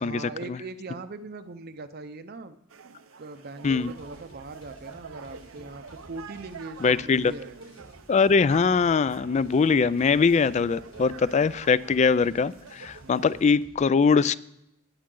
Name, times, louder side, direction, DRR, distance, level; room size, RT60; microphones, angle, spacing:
voice 1, 0.0-2.6 3.2-7.6 13.0-13.3, right 3 dB, 50° right, 9 dB, 0.6 m, -40 dB
sound 1, 2.7-13.5, right 6 dB, 85° right, 0.6 m, -47 dB
sound 2, 3.7-13.8, equal, 55° left, 4.5 m, -53 dB
voice 2, 6.8-7.3 8.1-14.4, left 5 dB, 35° left, 18 dB, 0.3 m, -22 dB
18.0 x 8.8 x 3.8 m, 0.81 s
head